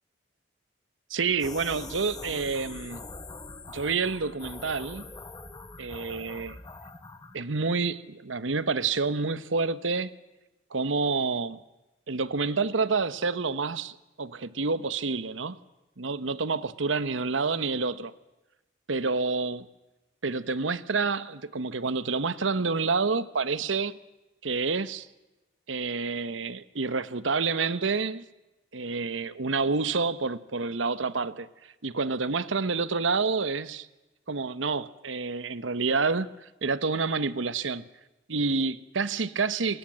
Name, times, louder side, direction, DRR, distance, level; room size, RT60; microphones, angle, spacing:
voice 1, 1.1-3.0 3.7-5.1 5.8-6.6 7.3-10.2 10.7-11.6 12.1-15.6 16.0-18.1 18.9-19.7 20.2-23.9 24.4-25.1 25.7-28.2 28.7-31.5 31.8-33.9 34.3-37.8 38.3-39.8, right 4 dB, 90° right, 1.0 m, -28 dB
sound 1, 1.3-7.4, left 3 dB, 20° left, 1.3 m, -43 dB
29.0 x 20.0 x 7.5 m
head